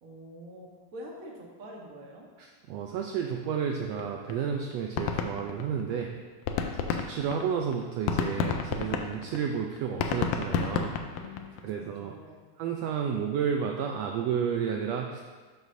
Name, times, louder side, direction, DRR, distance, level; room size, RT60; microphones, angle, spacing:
voice 1, 0.0-2.3 11.0-12.4, left 1 dB, 65° right, -1 dB, 0.8 m, -46 dB
voice 2, 2.4-6.2 6.9-10.9 11.6-12.1 12.6-15.2, right 7 dB, 80° right, 2 dB, 1.5 m, -31 dB
sound 1, 4.0-4.1 4.3-4.4 4.7-6.0 6.3-11.6, left 6 dB, 80° left, 1.6 m, -30 dB
12.0 x 6.1 x 2.6 m, 1.4 s
omnidirectional pair, 3.5 m